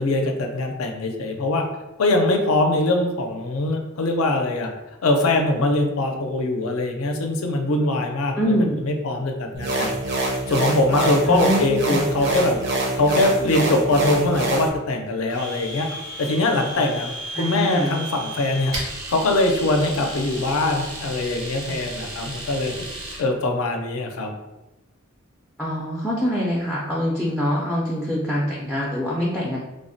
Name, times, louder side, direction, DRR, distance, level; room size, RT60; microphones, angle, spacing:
voice 1, 0.0-1.7 2.0-4.7 5.0-8.5 8.8-9.9 10.5-12.6 13.0-15.9 16.2-18.7 19.1-22.7 23.2-24.3, left 2 dB, 75° left, 3 dB, 0.4 m, -22 dB
voice 2, 8.4-8.9 11.3-12.1 17.3-18.0 25.6-29.6, equal, ahead, -5 dB, 0.3 m, -24 dB
sound 1, 9.6-14.7, right 2 dB, 55° right, 0.5 m, -25 dB
Domestic sounds home sounds, 15.3-23.2, right 1 dB, 90° right, 0.9 m, -34 dB
3.3 x 2.0 x 2.6 m, 1.0 s
head